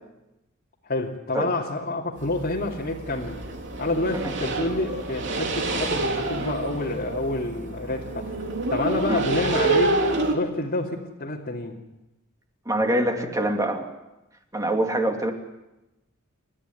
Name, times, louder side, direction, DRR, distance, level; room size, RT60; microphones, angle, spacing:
voice 1, 0.8-3.4 3.8-8.4 8.7-10.0 10.3-11.8, left 2 dB, 45° left, -4 dB, 2.6 m, -28 dB
sound 1, 2.2-10.3, right 2 dB, 55° right, 3.4 m, -28 dB
voice 2, 12.6-13.9 14.5-15.3, right 1 dB, 15° right, 3 dB, 2.8 m, -24 dB
29.5 x 14.0 x 9.7 m, 0.98 s
head